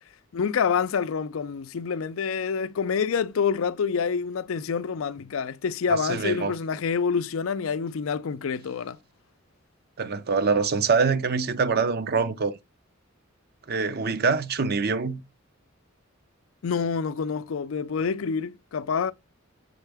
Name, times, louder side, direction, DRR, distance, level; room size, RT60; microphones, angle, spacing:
voice 1, 0.3-9.0 16.6-19.1, left 6 dB, 85° left, 0.5 m, -27 dB
voice 2, 5.9-6.6 10.0-12.6 13.7-15.2, right 5 dB, 50° right, 0.7 m, -24 dB
6.4 x 4.5 x 3.4 m
head